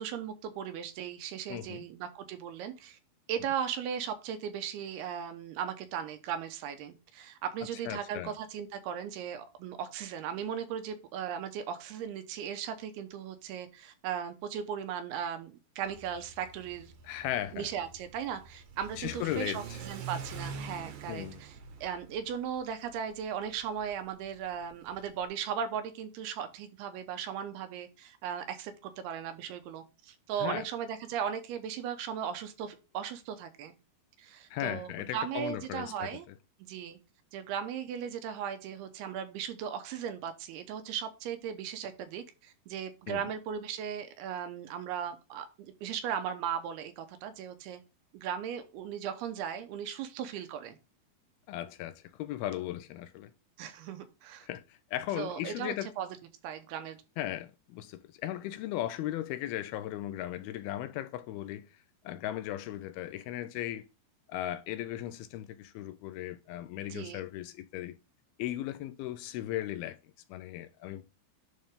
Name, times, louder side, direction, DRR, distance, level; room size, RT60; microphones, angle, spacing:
voice 1, 0.0-3.0 3.3-16.9 17.5-21.5 21.8-33.7 34.2-36.3 36.6-37.0 37.3-47.8 48.1-50.8 53.6-54.5 55.2-56.1 56.4-57.0 66.9-67.2, right 8 dB, 85° right, 2.8 m, -37 dB
voice 2, 1.5-1.9 7.9-8.4 17.0-17.7 19.0-19.8 21.1-21.4 30.4-30.7 34.5-36.1 43.1-43.2 51.5-53.3 54.4-55.9 57.2-61.7 62.1-63.9 64.3-68.0 68.4-70.0 70.3-71.0, left 13 dB, 80° left, 2.3 m, -37 dB
Car / Accelerating revving vroom, 15.8-25.3, right 5 dB, 65° right, 2.1 m, -46 dB
11.0 x 3.9 x 3.5 m
omnidirectional pair, 4.6 m